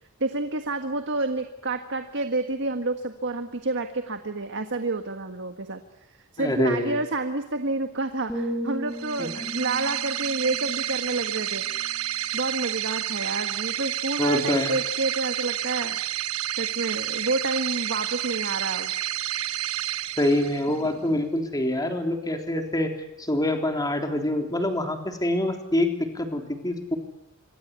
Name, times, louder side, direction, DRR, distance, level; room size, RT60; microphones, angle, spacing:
voice 1, 0.2-5.8 6.3-12.0 12.3-16.0 16.6-18.9, right 2 dB, 60° right, 7 dB, 1.6 m, -29 dB
voice 2, 6.4-7.0 9.2-9.3 14.2-14.7 20.2-22.9 23.2-27.0, left 1 dB, 20° left, 4 dB, 3.4 m, -25 dB
sound 1, 8.3-12.3 12.6-13.0, equal, ahead, 4.4 m, -36 dB
sound 2, 8.9-20.9, right 13 dB, 85° right, 1.1 m, -30 dB
27.0 x 24.5 x 8.3 m, 0.83 s
head